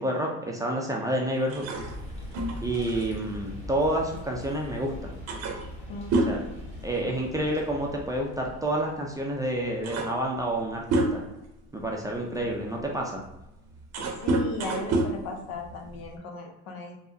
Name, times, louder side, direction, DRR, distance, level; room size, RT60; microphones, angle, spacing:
voice 1, 0.0-1.6 2.6-5.1 6.3-6.4 6.8-11.2 11.7-13.2, right 1 dB, 10° right, -1 dB, 0.4 m, -29 dB
sound 1, 1.5-4.5 4.8-4.9 5.3-7.4 7.7-8.0 9.0-9.1 9.5-11.5 12.1-16.2, right 2 dB, 45° right, 0.7 m, -30 dB
sound 2, 1.7-9.0, left 1 dB, 15° left, 1.2 m, -41 dB
voice 2, 5.9-6.4 14.2-17.0, left 3 dB, 70° left, 3 dB, 0.7 m, -37 dB
3.3 x 2.0 x 2.6 m, 0.94 s
supercardioid pair, 85°, 36 cm